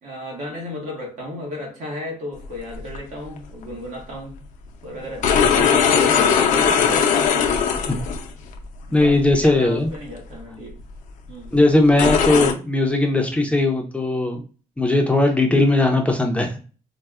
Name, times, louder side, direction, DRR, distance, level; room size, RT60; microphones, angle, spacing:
voice 1, 0.0-4.5 4.8-7.4 7.8-8.1 8.8-10.8 11.3-11.6, left 1 dB, 75° right, 1.4 m, -34 dB
sound 1, 2.8-3.0 5.0-8.3 9.0-9.3 9.9-10.0 10.8-10.9 11.9-12.5, left 6 dB, 90° left, 0.5 m, -18 dB
voice 2, 8.9-9.9 11.5-14.4 14.8-16.6, left 2 dB, 10° left, 0.4 m, -18 dB
4.2 x 2.0 x 2.3 m
cardioid pair, 140°, 13 cm